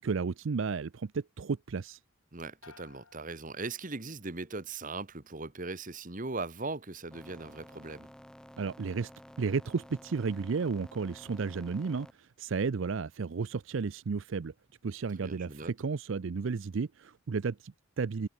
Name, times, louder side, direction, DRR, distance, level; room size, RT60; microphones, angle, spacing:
voice 1, 0.0-2.0 8.6-9.1 9.4-14.5 14.8-18.3, right 5 dB, 65° right, 0.5 m, -33 dB
voice 2, 2.3-8.1 15.2-15.7, right 3 dB, 40° right, 1.4 m, -39 dB
sound 1, 2.6-4.4 4.8-5.3, left 5 dB, 80° left, 2.5 m, -60 dB
sound 2, 7.1-12.1, equal, 5° left, 0.7 m, -52 dB
head